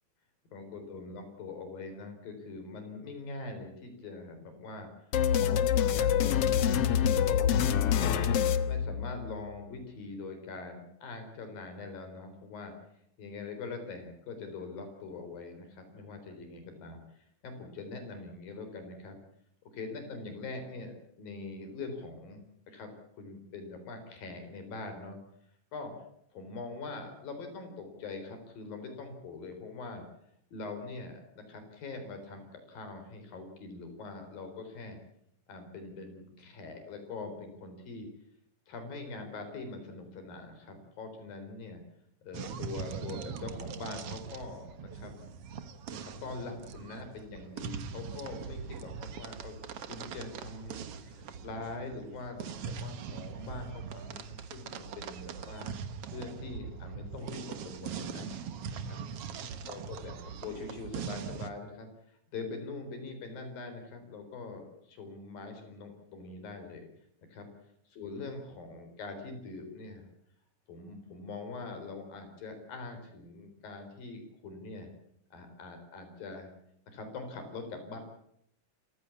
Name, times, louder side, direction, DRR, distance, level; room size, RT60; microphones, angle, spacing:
voice 1, 0.5-12.7 13.2-17.0 17.4-19.2 19.7-22.4 22.7-25.2 25.7-25.9 26.3-30.1 30.5-35.0 35.5-38.1 38.7-41.8 42.2-45.1 45.9-49.6 49.9-55.8 56.1-58.3 58.8-59.0 59.7-61.9 62.3-66.9 67.3-67.5 67.9-70.1 70.7-74.9 75.3-76.5 76.9-78.0, left 3 dB, 80° left, 7 dB, 5.7 m, -43 dB
sound 1, 5.1-9.4, left 9 dB, 65° left, 1.5 m, -26 dB
sound 2, 42.3-61.5, right 6 dB, 55° right, 1.8 m, -41 dB
28.5 x 15.0 x 8.5 m, 0.74 s
omnidirectional pair, 4.0 m